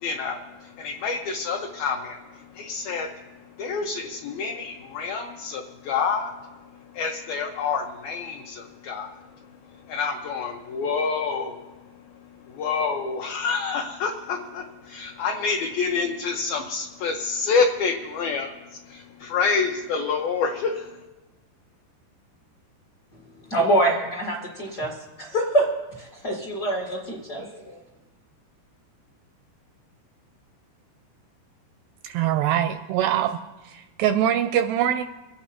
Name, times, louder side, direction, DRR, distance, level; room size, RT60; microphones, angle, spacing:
voice 1, 0.0-2.2 2.5-3.2 3.6-6.3 6.9-9.2 9.9-11.6 12.5-18.6 18.9-20.9, left 5 dB, 75° left, 2 dB, 2.2 m, -27 dB
voice 2, 23.5-25.7 26.0-27.8, right 1 dB, 55° left, -1 dB, 1.1 m, -25 dB
voice 3, 32.0-33.4 33.6-35.0, right 10 dB, 85° right, 8 dB, 2.4 m, -23 dB
24.0 x 8.8 x 4.3 m, 1.1 s
omnidirectional pair, 5.3 m